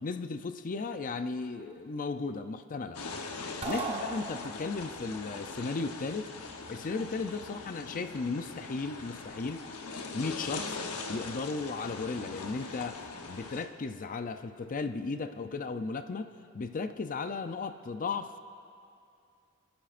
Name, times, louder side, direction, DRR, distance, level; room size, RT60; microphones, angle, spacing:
voice 1, 0.0-3.0 3.7-6.3 6.7-9.6 10.1-10.8 11.1-16.3 16.5-18.4, left 4 dB, 35° left, 9 dB, 0.5 m, -35 dB
sound 1, 2.9-13.7, left 3 dB, 90° left, 1.0 m, -41 dB
sound 2, 3.6-4.9, right 4 dB, 25° right, 1.1 m, -37 dB
29.0 x 10.5 x 2.5 m, 2.5 s
head